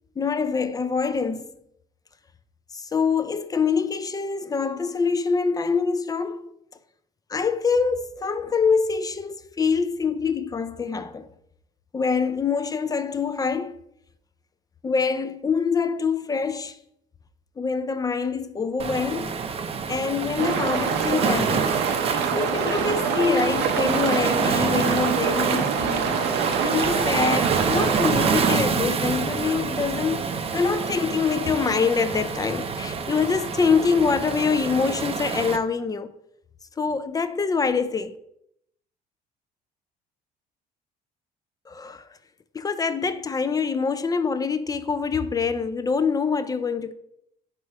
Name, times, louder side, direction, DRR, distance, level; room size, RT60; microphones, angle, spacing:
voice 1, 0.2-1.5 2.7-6.5 7.3-11.3 11.9-13.8 14.8-16.8 17.6-19.4 19.9-21.8 22.3-26.2 26.6-36.1 36.8-38.2 41.7-42.1 42.5-46.9, left 5 dB, 20° left, 0.4 m, -25 dB
Waves surf, 18.8-35.6, right 5 dB, 35° right, 0.6 m, -28 dB
sound 1, 20.4-28.6, right 7 dB, 80° right, 0.7 m, -25 dB
4.8 x 4.7 x 4.3 m
cardioid pair, 110°, 17 cm